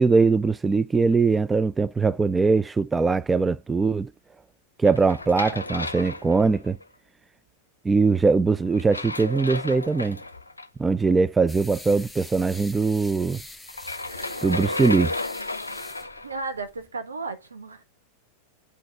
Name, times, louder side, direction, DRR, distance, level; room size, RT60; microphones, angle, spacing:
voice 1, 0.0-4.1 4.8-6.8 7.8-10.2 10.8-13.4 14.4-15.1, right 4 dB, 15° right, 0.3 m, -21 dB
sound 1, 4.8-6.8 8.7-10.7 13.7-16.4, left 2 dB, 80° left, 0.6 m, -33 dB
sound 2, 11.5-16.9, left 2 dB, 5° left, 1.0 m, -45 dB
voice 2, 16.2-17.8, right 3 dB, 75° right, 1.2 m, -34 dB
8.2 x 4.0 x 4.6 m
figure-of-eight pair, 90°, 0 cm